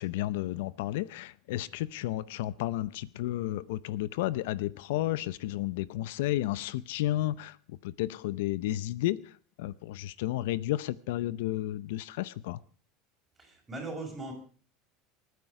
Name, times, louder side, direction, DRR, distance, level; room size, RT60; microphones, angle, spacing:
voice 1, 0.0-12.6, left 15 dB, 80° left, 0.6 m, -32 dB
voice 2, 13.4-14.3, right 2 dB, 10° right, 5.7 m, -39 dB
28.0 x 9.5 x 4.9 m
supercardioid pair, 155°, 0 cm